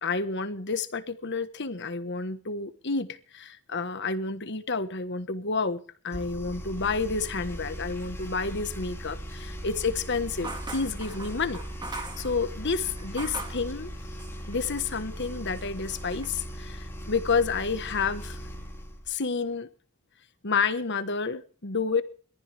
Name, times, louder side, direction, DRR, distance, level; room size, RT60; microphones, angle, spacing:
voice 1, 0.0-11.6 11.9-13.9 14.5-18.4 19.1-19.7 20.4-22.0, left 4 dB, 55° left, 1.3 m, -30 dB
sound 1, 6.1-19.1, equal, 10° left, 2.8 m, -39 dB
Mechanical fan, 7.0-14.0, right 1 dB, 50° right, 3.2 m, -46 dB
sound 2, 10.4-13.7 14.2-14.9 15.2-16.3, right 2 dB, 20° right, 2.1 m, -41 dB
22.0 x 14.5 x 3.5 m
head